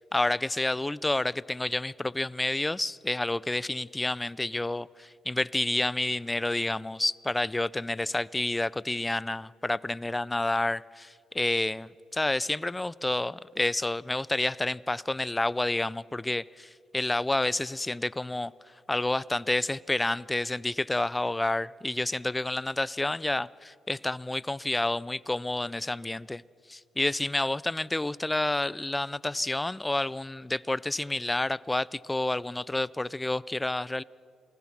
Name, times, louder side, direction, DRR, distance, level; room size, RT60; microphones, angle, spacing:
voice 1, 0.0-26.4 26.7-34.0, left 2 dB, 15° left, 0.4 m, -29 dB
28.5 x 19.5 x 6.0 m
cardioid pair, 90°, 0 cm